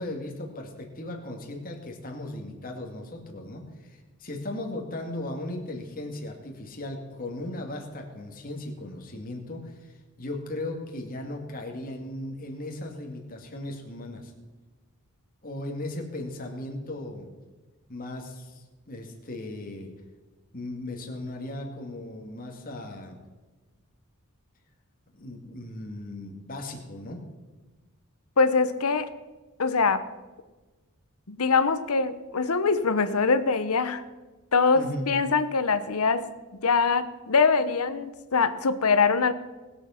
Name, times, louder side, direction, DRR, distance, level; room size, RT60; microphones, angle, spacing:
voice 1, 0.0-14.3 15.4-17.3 17.9-19.9 20.5-23.2 25.1-27.2 34.7-35.1, left 1 dB, 40° left, 1 dB, 2.2 m, -37 dB
voice 2, 28.4-29.1 29.6-30.0 31.3-34.0 34.5-36.3 36.6-39.3, left 4 dB, 80° left, 12 dB, 0.9 m, -23 dB
20.0 x 7.3 x 5.8 m, 1.2 s
head